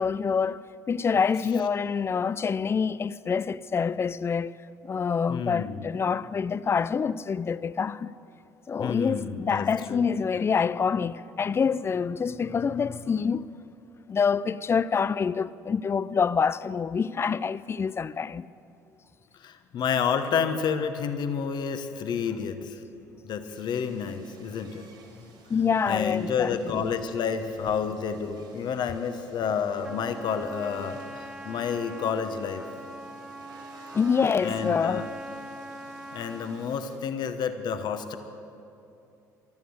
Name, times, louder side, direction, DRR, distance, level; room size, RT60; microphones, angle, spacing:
voice 1, 0.0-4.5 4.8-8.1 8.7-13.5 14.1-18.5 25.5-26.8 33.9-35.1, left 6 dB, 25° left, 0.4 m, -26 dB
voice 2, 5.3-5.8 8.8-10.0 19.4-22.8 23.2-24.8 25.9-32.6 34.4-35.1 36.1-38.2, left 6 dB, 50° left, 1.1 m, -30 dB
sound 1, 23.5-37.0, right 4 dB, 55° right, 3.1 m, -54 dB
Trumpet, 29.8-36.8, right 1 dB, 10° right, 0.8 m, -43 dB
14.5 x 12.5 x 7.9 m
hypercardioid pair, 60°, 10 cm